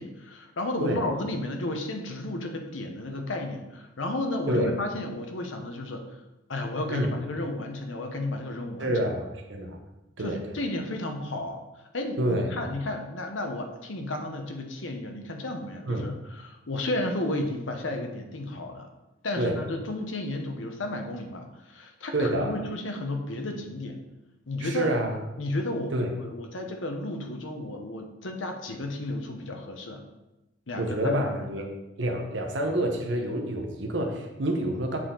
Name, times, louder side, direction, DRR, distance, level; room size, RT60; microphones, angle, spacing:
voice 1, 0.0-6.0 6.5-9.0 10.2-11.6 11.9-18.9 19.2-24.0 24.5-24.9 25.4-30.0 30.7-31.2, left 1 dB, 85° left, 4 dB, 0.9 m, -33 dB
voice 2, 8.8-9.8 10.2-10.6 12.2-12.7 15.8-16.1 19.4-19.6 22.1-22.5 24.6-25.2 25.9-26.1 30.8-31.7 32.0-35.0, right 1 dB, 65° right, 2 dB, 0.9 m, -28 dB
7.6 x 4.3 x 3.8 m, 0.99 s
head